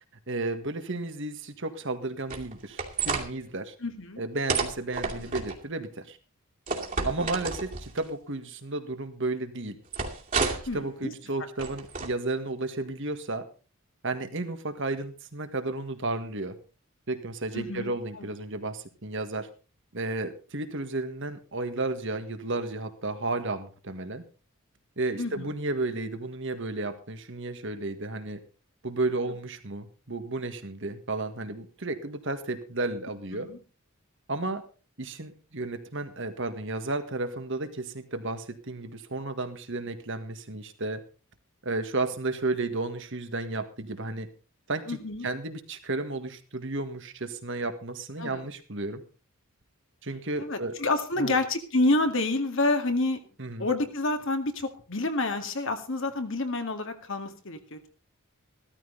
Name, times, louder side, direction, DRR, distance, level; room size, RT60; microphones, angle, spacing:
voice 1, 0.3-3.7 4.2-6.2 7.0-9.8 10.4-13.5 14.0-16.6 17.1-19.5 19.9-24.2 25.0-28.4 28.8-33.5 34.3-34.6 35.0-41.0 41.6-44.3 44.7-45.0 45.2-49.0 50.0-50.7 51.2-51.4 53.4-53.7, right 2 dB, 55° right, 9 dB, 1.8 m, -33 dB
sound 1, 2.3-3.3 4.5-5.6 6.7-8.0 9.9-10.8 11.6-12.1, right 4 dB, 40° right, 2.5 m, -30 dB
voice 2, 3.8-4.2 5.1-5.3 7.2-7.3 10.7-11.1 17.5-18.3 25.2-25.5 33.3-33.6 44.9-45.3 48.2-48.4 50.4-53.2 53.6-57.8, left 2 dB, 60° left, 6 dB, 2.1 m, -28 dB
15.5 x 13.5 x 4.0 m, 0.35 s
head